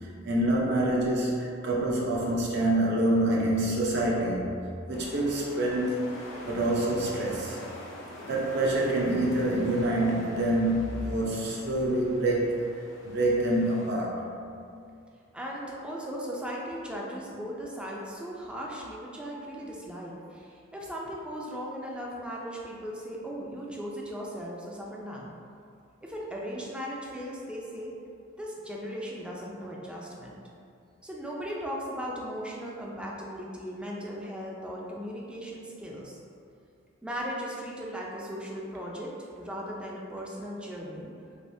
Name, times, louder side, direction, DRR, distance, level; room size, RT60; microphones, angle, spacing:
voice 1, 0.2-4.5 4.9-6.0 6.5-7.6 8.2-12.6 13.0-14.2, right 1 dB, 60° right, -3 dB, 0.6 m, -26 dB
sound 1, 4.9-13.9, left 1 dB, 80° left, 0.7 m, -45 dB
voice 2, 15.3-25.3 26.0-27.9 28.4-30.3 31.0-36.2 37.0-39.1 39.4-41.1, equal, 5° right, -3 dB, 0.4 m, -37 dB
3.4 x 3.0 x 2.6 m, 2.4 s
head